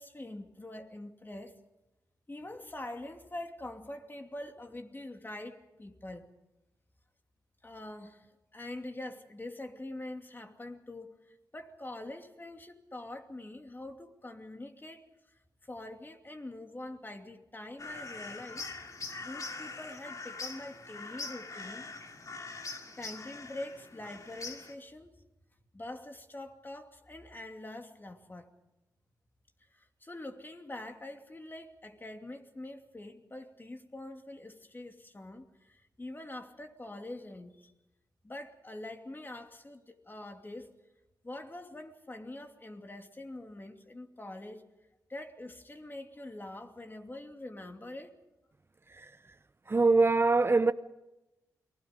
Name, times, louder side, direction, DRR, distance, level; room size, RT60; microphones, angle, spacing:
voice 1, 0.0-1.6 2.3-6.3 7.6-18.7 19.2-21.9 22.9-25.1 25.7-28.5 29.7-37.7 38.2-40.7 41.2-44.6 45.1-48.1, left 1 dB, 25° left, 2.7 m, -44 dB
sound 1, 17.8-24.7, left 3 dB, 45° left, 2.4 m, -43 dB
voice 2, 48.9-49.4 49.7-50.7, right 3 dB, 30° right, 0.7 m, -24 dB
29.0 x 20.5 x 5.3 m
cardioid pair, 50°, 8 cm